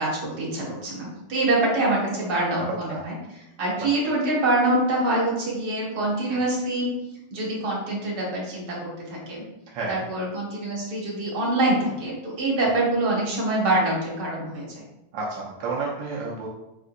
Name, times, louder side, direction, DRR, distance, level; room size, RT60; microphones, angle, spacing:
voice 1, 0.0-3.2 3.6-6.9 7.3-9.4 9.9-14.8, right 2 dB, 65° right, -4 dB, 1.9 m, -25 dB
voice 2, 15.1-16.5, right 3 dB, 85° right, -3 dB, 1.4 m, -31 dB
4.4 x 3.8 x 2.5 m, 0.92 s
omnidirectional pair, 1.9 m